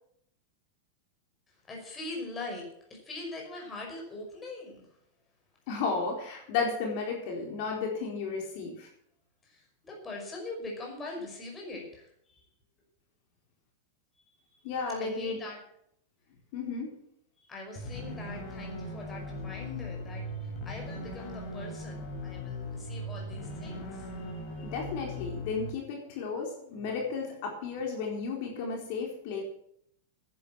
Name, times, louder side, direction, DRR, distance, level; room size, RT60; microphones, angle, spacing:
voice 1, 1.7-4.8 9.4-12.4 15.0-15.6 17.5-24.7, left 2 dB, 15° left, 0 dB, 5.3 m, -42 dB
voice 2, 5.7-8.9 14.6-15.4 16.5-17.0 24.6-29.4, left 4 dB, 55° left, 1 dB, 4.0 m, -33 dB
sound 1, 17.8-25.7, left 1 dB, 35° left, 5.2 m, -39 dB
11.0 x 10.0 x 7.6 m, 0.69 s
supercardioid pair, 145°, 0 cm